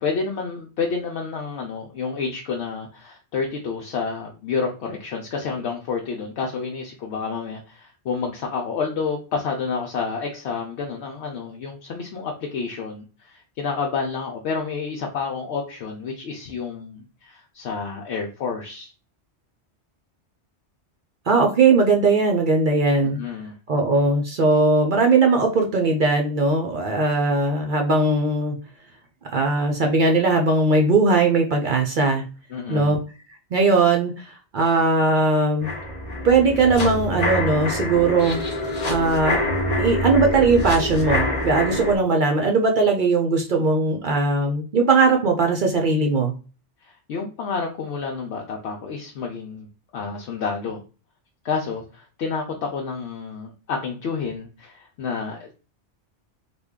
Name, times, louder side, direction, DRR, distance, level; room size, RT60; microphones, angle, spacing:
voice 1, 0.0-18.9 23.0-23.6 32.5-32.9 46.8-49.7 49.9-50.8 51.4-55.5, left 5 dB, 75° left, 0 dB, 0.9 m, -29 dB
voice 2, 21.3-23.2 23.7-28.6 29.3-32.2 32.7-33.0 33.5-35.7 36.2-38.4 38.8-39.5 39.8-46.3, right 3 dB, 55° right, 2 dB, 0.6 m, -19 dB
sound 1, 35.6-42.0, left 1 dB, 40° left, 0.9 m, -25 dB
3.4 x 2.2 x 3.5 m, 0.34 s
omnidirectional pair, 1.2 m